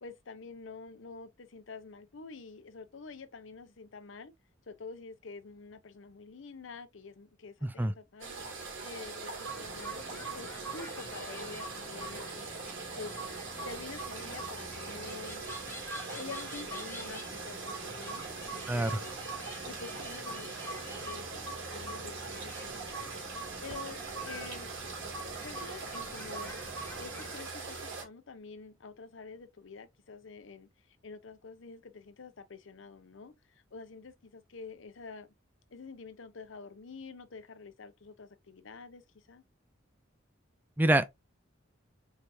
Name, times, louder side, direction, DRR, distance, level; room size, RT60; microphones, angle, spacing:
voice 1, 0.0-4.3 4.7-8.4 8.8-12.5 13.0-13.1 13.6-15.4 16.1-18.2 18.7-19.2 19.6-21.4 21.7-23.1 23.6-24.7 25.4-26.6 27.0-30.7 31.0-33.3 33.7-35.3 35.7-39.0 39.3-39.4, left 4 dB, 75° left, 0.7 m, -47 dB
sound 1, 8.2-28.0, right 4 dB, 85° right, 2.5 m, -41 dB
sound 2, 9.4-27.3, right 1 dB, 15° left, 0.8 m, -45 dB
voice 2, 18.7-19.0 40.8-41.1, right 1 dB, 10° right, 0.4 m, -25 dB
4.5 x 3.4 x 2.6 m
head